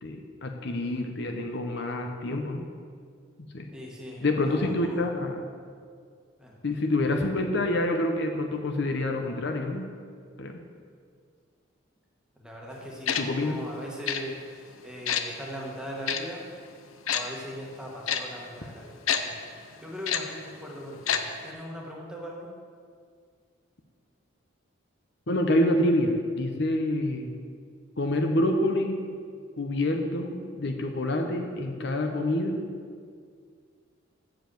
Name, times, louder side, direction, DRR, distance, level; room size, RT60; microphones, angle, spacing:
voice 1, 0.0-2.6 3.4-3.7 4.2-5.4 6.6-9.9 10.4-10.6 13.2-13.6 25.3-27.3 28.0-29.0 29.6-32.7, left 1 dB, 55° left, 4 dB, 0.8 m, -27 dB
voice 2, 3.7-5.0 6.4-6.6 12.4-16.4 17.1-19.0 19.2-22.5, equal, 5° right, -3 dB, 1.4 m, -40 dB
Tick-tock, 13.1-13.2 14.1-14.2 15.1-15.2 16.1-16.2 17.1-17.2 18.1-18.2 19.1-19.2 20.1-20.2 21.1-21.2 21.5-21.6, left 8 dB, 85° left, 0.7 m, -26 dB
7.7 x 7.0 x 7.7 m, 2.1 s
head